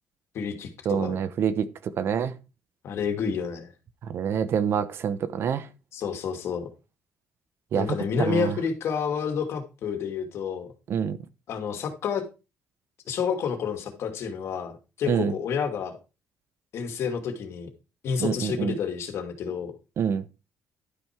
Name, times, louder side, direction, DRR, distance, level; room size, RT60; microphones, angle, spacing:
voice 1, 0.3-1.1 2.8-3.7 5.9-6.7 7.7-10.7 11.5-12.2 13.1-15.9 16.7-17.7 18.0-19.7, left 6 dB, 65° left, 2.4 m, -29 dB
voice 2, 0.8-2.3 4.0-5.7 7.7-7.9 8.2-8.6 10.9-11.2 15.1-15.3 18.2-18.7 20.0-20.2, right 7 dB, 60° right, 1.0 m, -26 dB
12.0 x 5.6 x 4.6 m
cardioid pair, 95°, 5 cm